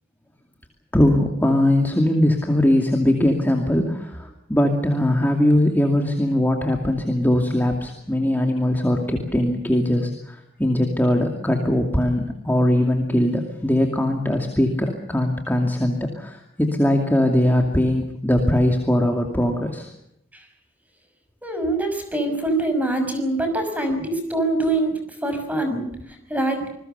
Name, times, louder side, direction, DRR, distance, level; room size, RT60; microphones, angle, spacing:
voice 1, 0.9-19.9, left 1 dB, 10° left, 3 dB, 2.4 m, -20 dB
voice 2, 21.4-25.9 26.3-26.6, right 2 dB, 10° right, 6 dB, 6.0 m, -24 dB
27.5 x 21.5 x 6.8 m, 0.77 s
head